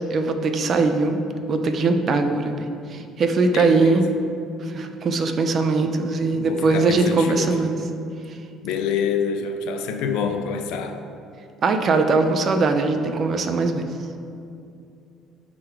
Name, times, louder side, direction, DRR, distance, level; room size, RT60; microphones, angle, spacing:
voice 1, 0.1-1.2 1.5-2.7 3.2-4.0 4.7-7.8 11.6-13.8, right 3 dB, 35° right, 6 dB, 0.6 m, -20 dB
voice 2, 3.5-4.1 6.3-7.8 8.6-11.0, left 6 dB, 85° left, 5 dB, 0.5 m, -27 dB
11.0 x 3.9 x 4.5 m, 2.5 s
cardioid pair, 155°, 0 cm